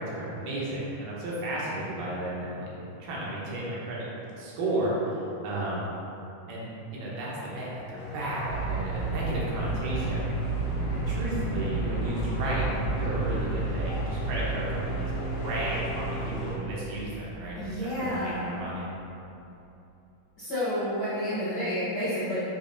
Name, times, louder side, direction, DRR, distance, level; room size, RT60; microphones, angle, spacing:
voice 1, 0.0-2.7 3.0-4.1 4.4-5.9 6.5-10.3 11.1-12.7 13.0-15.1 15.4-18.9, right 1 dB, 85° right, -6 dB, 2.5 m, -33 dB
sound 1, 8.0-16.6, right 2 dB, 80° left, 2.0 m, -36 dB
sound 2, 8.4-18.4, right 2 dB, 55° right, 2.6 m, -32 dB
voice 2, 17.6-18.5 20.4-22.4, equal, 60° left, -15 dB, 1.3 m, -30 dB
6.8 x 3.0 x 2.6 m, 2.8 s
omnidirectional pair, 3.7 m